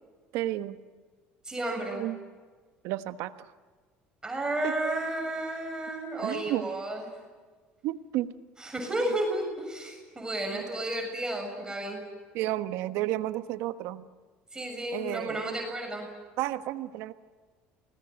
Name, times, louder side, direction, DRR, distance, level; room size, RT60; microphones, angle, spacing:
voice 1, 0.3-0.8 1.9-2.2 2.8-3.3 4.6-5.0 6.2-6.7 7.8-8.3 10.5-10.6 12.3-14.0 14.9-15.4 16.4-17.1, right 15 dB, 75° right, 10 dB, 1.2 m, -32 dB
voice 2, 1.4-2.1 4.2-7.0 8.6-12.0 14.5-16.1, right 1 dB, 15° right, 1 dB, 7.1 m, -32 dB
28.0 x 20.0 x 9.2 m, 1.4 s
supercardioid pair, 95°, 4 cm